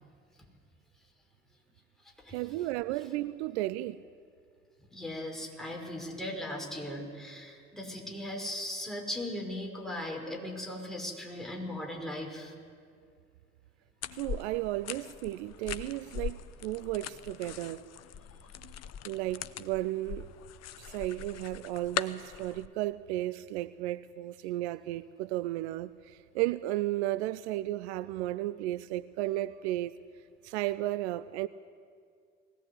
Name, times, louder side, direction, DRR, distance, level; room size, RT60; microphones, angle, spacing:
voice 1, 2.3-4.0 14.2-17.8 19.0-20.2 20.8-29.9 30.4-31.5, right 16 dB, 65° right, 0.6 m, -34 dB
voice 2, 4.9-12.5, left 1 dB, ahead, 5.7 m, -38 dB
sound 1, 14.0-22.7, left 10 dB, 45° left, 0.8 m, -41 dB
20.5 x 17.0 x 8.4 m
figure-of-eight pair, 50°, 35 cm